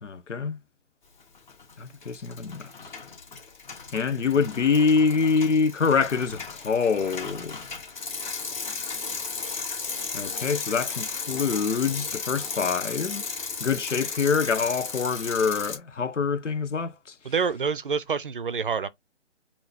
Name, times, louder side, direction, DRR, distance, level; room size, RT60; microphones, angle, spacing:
voice 1, 0.0-0.6 1.8-2.7 3.9-7.6 10.1-13.2 13.6-17.1, left 5 dB, 85° left, 0.8 m, -25 dB
Bicycle, 1.3-1.7 2.0-15.8, left 4 dB, 40° left, 2.8 m, -35 dB
voice 2, 17.2-18.9, right 6 dB, 45° right, 0.5 m, -27 dB
5.4 x 2.8 x 2.8 m
figure-of-eight pair, 155°, 36 cm